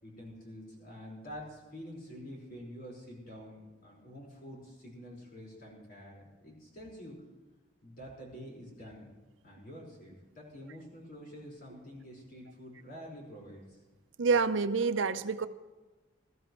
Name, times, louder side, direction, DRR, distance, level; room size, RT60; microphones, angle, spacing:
voice 1, 0.0-7.2 7.8-9.1 9.4-13.8, equal, 45° left, -3 dB, 4.7 m, -47 dB
voice 2, 14.2-15.5, right 4 dB, 75° right, 12 dB, 0.6 m, -27 dB
20.0 x 13.5 x 3.1 m, 1.2 s
head